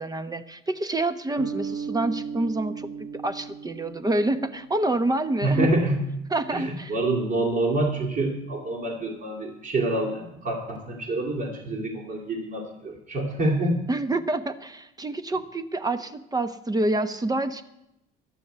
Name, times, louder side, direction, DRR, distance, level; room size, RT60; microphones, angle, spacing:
voice 1, 0.0-5.7 6.3-6.9 13.9-17.6, right 2 dB, 20° right, 10 dB, 1.0 m, -27 dB
sound 1, 1.4-5.6, right 6 dB, 85° right, 1.3 m, -37 dB
voice 2, 5.4-6.0 6.5-13.8, right 2 dB, 50° right, -3 dB, 3.0 m, -26 dB
12.0 x 6.9 x 9.2 m, 0.85 s
supercardioid pair, 85°, 19 cm